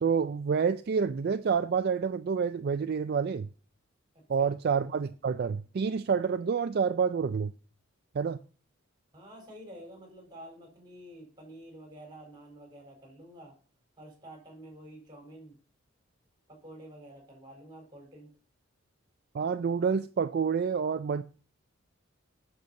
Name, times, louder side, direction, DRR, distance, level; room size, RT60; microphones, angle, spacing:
voice 1, 0.0-3.5 4.3-7.5 8.1-8.4 19.3-21.2, right 6 dB, 50° right, 0.3 m, -28 dB
voice 2, 9.1-13.6 14.0-15.6 16.5-18.3, right 1 dB, 20° right, 4.2 m, -49 dB
7.9 x 6.7 x 5.4 m
head